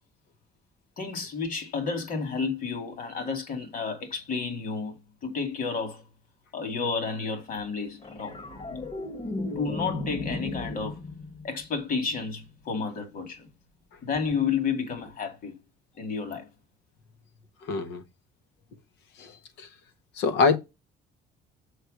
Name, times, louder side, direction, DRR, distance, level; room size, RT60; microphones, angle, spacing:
voice 1, 1.0-5.0 5.2-6.0 6.5-8.3 8.7-8.9 9.6-11.0 11.4-13.5 14.0-15.5 16.0-16.5, left 5 dB, 55° left, 2.5 m, -31 dB
sound 1, 8.0-12.5 14.9-15.1, left 2 dB, 35° left, 1.4 m, -36 dB
voice 2, 17.7-18.0 19.2-19.7 20.2-20.6, left 5 dB, 85° left, 1.2 m, -25 dB
6.4 x 4.7 x 6.5 m
cardioid pair, 110°, 17 cm